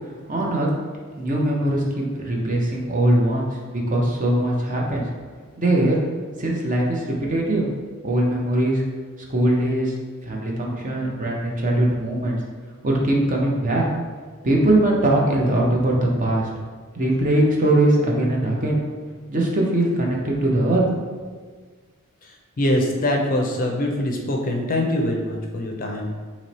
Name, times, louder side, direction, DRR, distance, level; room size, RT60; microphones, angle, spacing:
voice 1, 0.3-0.7 1.2-5.1 5.6-6.0 6.4-7.7 8.0-8.8 9.3-9.9 10.2-12.4 12.8-13.9 14.4-16.5 16.9-18.8 19.3-20.8, right 1 dB, 35° right, -2 dB, 0.7 m, -21 dB
voice 2, 22.2-26.1, left 1 dB, 40° left, 1 dB, 0.5 m, -24 dB
3.1 x 2.9 x 4.1 m, 1.5 s
head